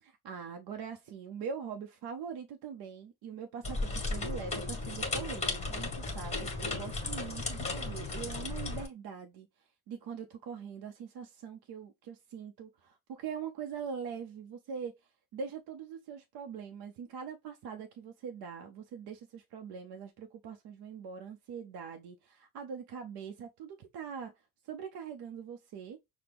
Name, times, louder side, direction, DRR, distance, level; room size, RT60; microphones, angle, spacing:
voice 1, 0.0-26.0, right 6 dB, 75° right, 0.7 m, -43 dB
sound 1, 3.6-8.9, left 3 dB, 20° left, 1.4 m, -35 dB
5.9 x 2.2 x 3.4 m
cardioid pair, 135°, 38 cm